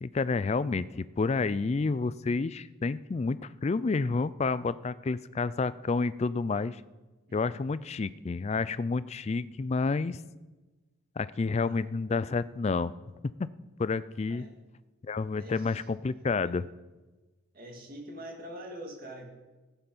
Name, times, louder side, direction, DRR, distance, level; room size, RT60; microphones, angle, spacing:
voice 1, 0.0-6.8 7.3-10.2 11.2-12.9 13.2-13.5 13.8-14.5 15.0-16.6, left 4 dB, 30° left, 17 dB, 0.3 m, -29 dB
voice 2, 11.5-11.9 14.3-14.5 15.4-15.8 16.4-16.5 17.5-19.3, right 1 dB, 40° right, 1 dB, 2.2 m, -44 dB
14.5 x 9.0 x 5.5 m, 1.2 s
head